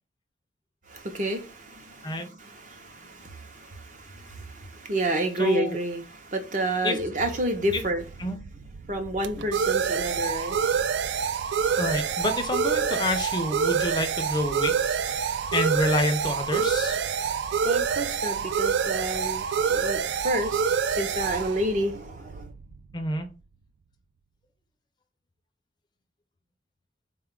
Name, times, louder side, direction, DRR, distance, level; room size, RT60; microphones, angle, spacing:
voice 1, 0.9-8.1 8.9-10.6 17.6-20.6 20.9-22.5, right 1 dB, 45° right, 0.6 m, -30 dB
voice 2, 5.4-5.8 6.8-7.0 7.7-7.8 8.2-8.4 11.8-17.0 22.9-23.3, left 1 dB, 25° left, 0.4 m, -28 dB
sound 1, 7.6-23.0, right 7 dB, 80° right, 0.3 m, -27 dB
3.9 x 2.3 x 3.6 m
head